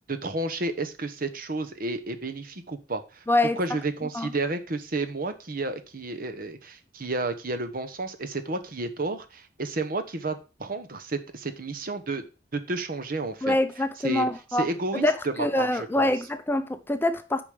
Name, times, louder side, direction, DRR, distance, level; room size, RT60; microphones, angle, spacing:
voice 1, 0.1-3.2 3.6-12.2 12.5-13.5 14.0-14.3 14.5-16.1, right 2 dB, 55° right, 1.0 m, -31 dB
voice 2, 3.3-3.6 4.1-4.3 13.4-14.7 15.0-17.4, left 1 dB, 15° left, 0.6 m, -25 dB
8.7 x 5.2 x 5.0 m
head